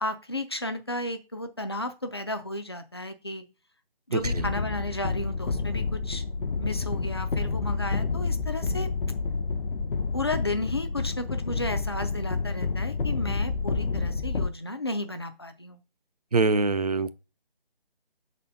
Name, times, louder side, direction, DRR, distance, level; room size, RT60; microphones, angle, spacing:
voice 1, 0.0-3.4 4.1-8.9 10.1-15.8, left 1 dB, 25° left, 0.4 m, -33 dB
voice 2, 4.1-4.5 16.3-17.1, right 3 dB, 40° right, 0.4 m, -24 dB
sound 1, 4.2-14.5, left 4 dB, 60° left, 0.7 m, -29 dB
5.2 x 4.3 x 5.2 m
figure-of-eight pair, 160°, 30 cm